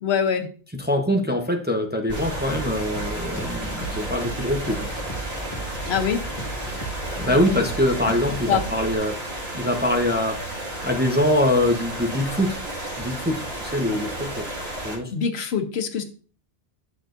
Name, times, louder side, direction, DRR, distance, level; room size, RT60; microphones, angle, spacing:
voice 1, 0.0-0.5 5.8-6.2 7.3-7.6 8.0-8.1 8.5-8.6 15.1-16.0, left 7 dB, 80° left, 8 dB, 1.1 m, -24 dB
voice 2, 0.8-4.9 7.2-9.2 9.5-10.4 10.8-12.6 13.0-14.5 14.8-15.1, left 1 dB, 10° right, 3 dB, 0.7 m, -23 dB
sound 1, 2.1-8.9, right 2 dB, 30° left, 1.6 m, -35 dB
sound 2, 2.1-15.0, right 1 dB, 70° right, 2.4 m, -33 dB
9.0 x 6.1 x 2.5 m, 0.39 s
omnidirectional pair, 1.1 m